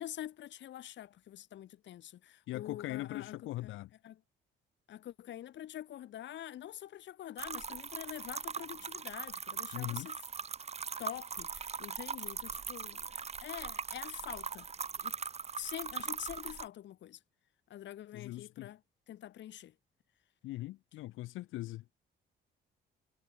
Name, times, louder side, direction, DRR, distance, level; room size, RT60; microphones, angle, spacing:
voice 1, 0.0-3.4 3.6-3.7 4.0-4.2 4.9-10.2 11.0-14.7 15.0-15.2 15.6-17.2 17.7-18.8 19.1-19.7, left 12 dB, 65° left, 1.0 m, -46 dB
voice 2, 2.5-3.9 9.7-10.1 18.1-18.7 20.4-21.9, left 17 dB, 85° left, 0.8 m, -40 dB
sound 1, 7.4-16.7, right 6 dB, 30° right, 0.9 m, -41 dB
cardioid pair, 90°, 20 cm